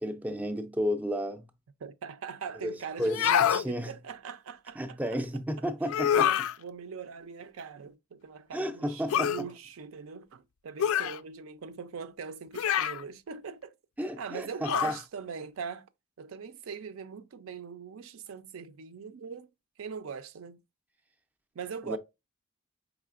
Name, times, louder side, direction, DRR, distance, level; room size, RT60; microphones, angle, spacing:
voice 1, 0.0-1.5 2.6-3.9 4.8-6.3 8.5-9.5 14.0-15.0 21.9-22.0, equal, 5° right, 0.3 m, -32 dB
voice 2, 1.8-5.2 6.1-13.7 14.2-15.9 16.2-19.5 19.8-20.6 21.5-22.0, right 6 dB, 80° right, 0.5 m, -41 dB
sound 1, 3.0-3.6 5.9-6.5 9.1-9.4 10.8-11.2 12.5-13.0 14.6-15.0, left 10 dB, 85° left, 0.3 m, -26 dB
4.8 x 3.3 x 2.4 m
head